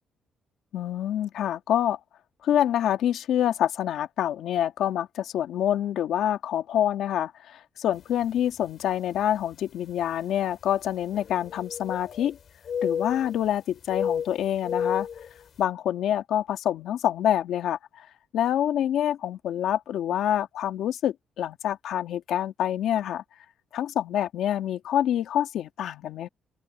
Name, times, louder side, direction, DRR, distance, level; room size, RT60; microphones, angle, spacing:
voice 1, 0.7-2.0 2.4-12.4 12.8-15.1 15.6-18.1 18.3-23.2 23.7-26.3, left 11 dB, 75° left, 2.2 m, -26 dB
sound 1, 8.2-8.4 9.1-9.2 11.1-12.4 12.6-13.5 13.9-15.3, left 7 dB, 55° left, 6.7 m, -31 dB
cardioid pair, 90°, 0 cm